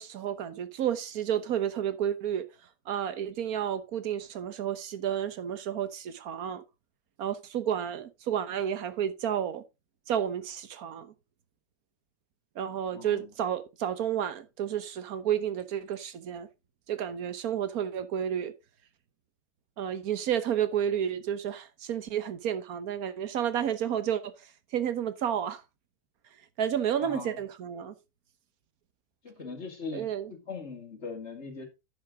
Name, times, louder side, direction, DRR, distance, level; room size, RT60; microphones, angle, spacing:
voice 1, 0.0-2.5 2.9-6.6 7.2-9.6 10.1-11.1 12.5-16.5 16.9-18.5 19.8-24.3 24.7-25.6 26.6-27.9 29.9-30.3, right 9 dB, 65° right, 1.4 m, -31 dB
voice 2, 12.9-13.3 27.0-27.4 29.2-31.7, left 4 dB, 40° left, 2.3 m, -40 dB
10.5 x 6.9 x 3.5 m
omnidirectional pair, 1.7 m